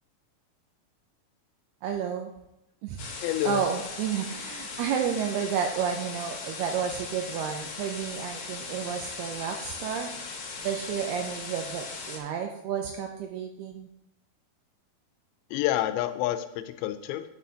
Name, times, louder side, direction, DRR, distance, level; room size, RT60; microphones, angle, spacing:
voice 1, 1.8-2.3 2.8-3.1 3.4-10.1 10.6-13.9, right 8 dB, 80° right, 3 dB, 2.3 m, -31 dB
sound 1, 3.0-12.2, left 4 dB, 70° left, 1.7 m, -39 dB
voice 2, 3.2-3.6 15.5-17.2, left 13 dB, 90° left, 10 dB, 2.8 m, -28 dB
9.6 x 8.2 x 2.8 m, 0.84 s
omnidirectional pair, 5.0 m